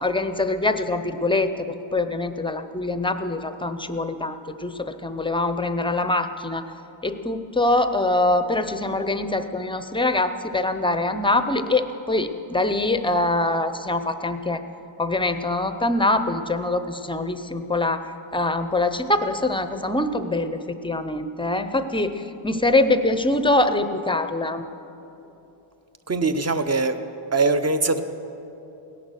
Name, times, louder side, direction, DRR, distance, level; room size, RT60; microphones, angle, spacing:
voice 1, 0.0-1.7 1.9-6.6 7.0-14.6 15.0-18.0 18.3-24.6, left 2 dB, 10° left, 9 dB, 0.5 m, -24 dB
voice 2, 26.1-27.0 27.3-28.0, right 3 dB, 30° right, 9 dB, 0.7 m, -22 dB
17.5 x 11.0 x 6.4 m, 2.9 s
wide cardioid pair, 145°, 50 cm